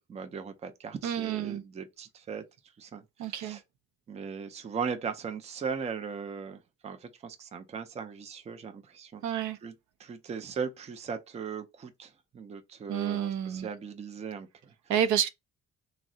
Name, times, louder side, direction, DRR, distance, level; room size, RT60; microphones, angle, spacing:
voice 1, 0.0-2.4 2.8-3.6 4.1-9.2 9.6-9.7 10.0-14.7, right 6 dB, 25° right, 0.4 m, -38 dB
voice 2, 1.0-1.6 3.2-3.6 9.2-9.6 12.9-13.7 14.9-15.3, right 9 dB, 80° right, 0.5 m, -29 dB
3.5 x 2.1 x 2.5 m
cardioid pair, 170°, 29 cm